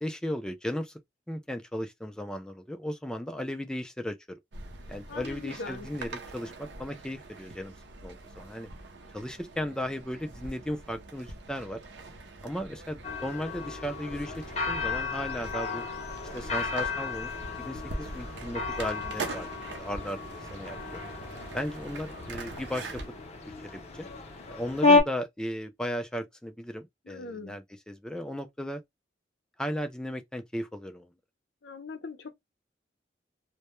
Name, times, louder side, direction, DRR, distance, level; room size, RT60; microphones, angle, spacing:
voice 1, 0.0-1.0 1.3-4.4 4.9-7.7 8.0-8.7 9.1-11.8 12.4-14.3 14.7-15.8 16.3-17.3 17.6-19.5 19.8-21.0 21.5-23.0 23.7-24.1 24.5-28.8 29.6-31.1, equal, 5° left, 0.3 m, -36 dB
sound 1, 4.5-23.1, right 3 dB, 85° right, 0.6 m, -43 dB
voice 2, 5.1-5.9 27.1-27.6 31.6-32.3, left 3 dB, 80° left, 0.6 m, -40 dB
sound 2, 13.0-25.0, left 3 dB, 40° left, 0.6 m, -31 dB
2.1 x 2.1 x 2.9 m
head